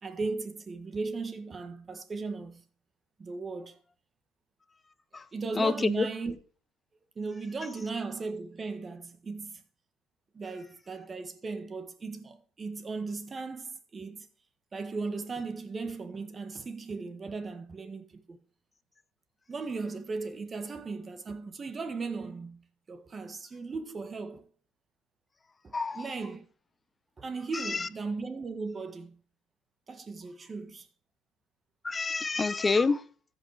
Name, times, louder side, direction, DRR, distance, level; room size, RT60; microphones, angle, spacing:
voice 1, 0.0-2.6 3.2-3.8 5.3-6.4 7.1-9.6 10.3-14.3 14.7-18.4 19.5-24.5 25.6-26.4 27.2-29.2 29.9-30.9, right 4 dB, 25° right, 1.5 m, -37 dB
voice 2, 5.6-6.1 25.7-26.0 27.7-27.8 31.8-33.0, left 4 dB, 20° left, 0.7 m, -27 dB
14.5 x 5.4 x 4.8 m
supercardioid pair, 115°, 0 cm